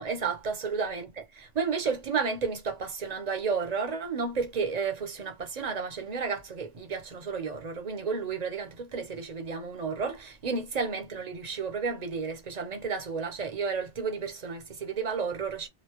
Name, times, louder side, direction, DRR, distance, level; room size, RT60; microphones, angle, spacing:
voice 1, 0.0-15.7, right 5 dB, 40° right, 0.8 m, -32 dB
3.0 x 2.7 x 2.9 m
omnidirectional pair, 1.2 m